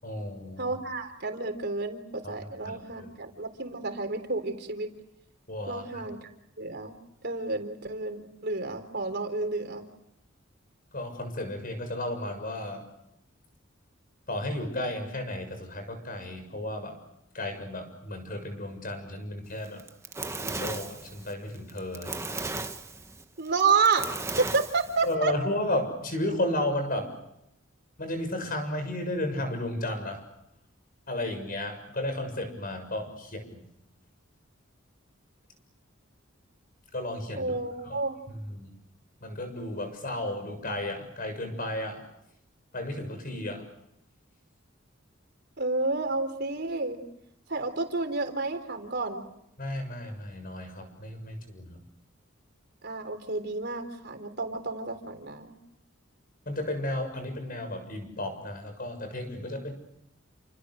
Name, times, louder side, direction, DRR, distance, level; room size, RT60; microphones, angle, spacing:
voice 1, 0.0-0.7 2.2-2.3 2.6-3.1 5.5-6.0 10.9-12.8 14.3-16.9 17.3-19.8 20.4-22.3 25.0-27.1 28.0-30.2 31.1-33.6 36.9-37.5 37.8-38.0 38.3-38.7 39.2-42.0 42.7-43.7 49.6-51.8 56.5-59.7, left 1 dB, 45° left, 7 dB, 7.1 m, -33 dB
voice 2, 0.6-4.9 5.7-6.3 6.6-6.9 7.2-9.8 23.4-24.1 24.4-25.3 37.3-38.2 45.6-47.0 47.5-49.2 52.8-55.5, right 4 dB, 55° right, 6 dB, 3.9 m, -30 dB
Fire, 19.7-25.1, right 3 dB, 15° right, 1.3 m, -36 dB
30.0 x 27.5 x 6.5 m, 0.80 s
head